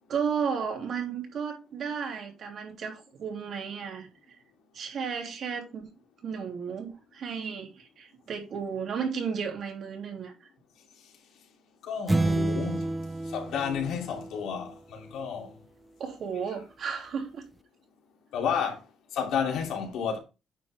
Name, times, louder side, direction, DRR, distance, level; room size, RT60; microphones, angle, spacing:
voice 1, 0.1-4.1 4.7-5.9 6.2-10.3 16.0-17.4, right 6 dB, 65° right, 3.2 m, -33 dB
voice 2, 11.8-12.9 13.3-15.5 18.3-18.8 19.1-20.2, left 7 dB, 80° left, 2.9 m, -31 dB
sound 1, 12.1-14.7, right 2 dB, 15° right, 0.5 m, -29 dB
9.3 x 5.9 x 3.3 m
cardioid pair, 90°, 0 cm